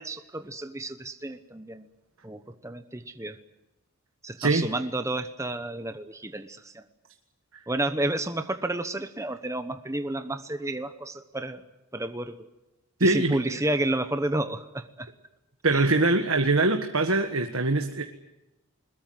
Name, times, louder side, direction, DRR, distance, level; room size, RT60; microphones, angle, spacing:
voice 1, 0.0-1.9 2.2-3.4 4.2-6.8 7.7-11.6 11.9-12.5 13.0-15.1 15.7-15.9, right 1 dB, 15° right, 9 dB, 0.9 m, -31 dB
voice 2, 13.0-13.6 15.6-18.0, right 2 dB, 70° right, 5 dB, 1.6 m, -23 dB
21.5 x 21.0 x 9.4 m, 0.97 s
head